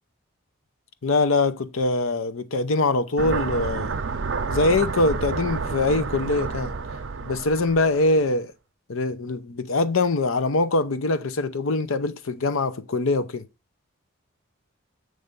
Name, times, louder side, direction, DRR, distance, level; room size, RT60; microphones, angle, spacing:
voice 1, 1.0-3.9 4.5-6.7 7.2-8.5 8.9-13.4, left 2 dB, 80° left, 0.7 m, -23 dB
sound 1, 3.2-8.1, right 4 dB, 70° right, 0.5 m, -29 dB
7.7 x 3.3 x 5.2 m
head